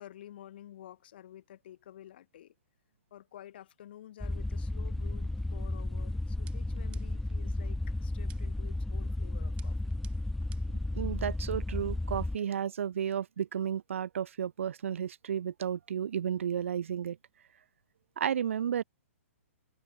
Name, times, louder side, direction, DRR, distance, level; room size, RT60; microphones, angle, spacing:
voice 1, 0.0-2.6 3.1-9.9, left 12 dB, 45° left, 7.0 m, -51 dB
sound 1, 4.2-12.4, left 2 dB, ahead, 0.3 m, -33 dB
sound 2, 6.5-7.4 8.3-8.7 9.6-10.8, right 13 dB, 15° right, 5.5 m, -58 dB
voice 2, 10.9-17.2 18.2-18.8, right 8 dB, 65° right, 1.2 m, -32 dB
open air
hypercardioid pair, 175°, 8 cm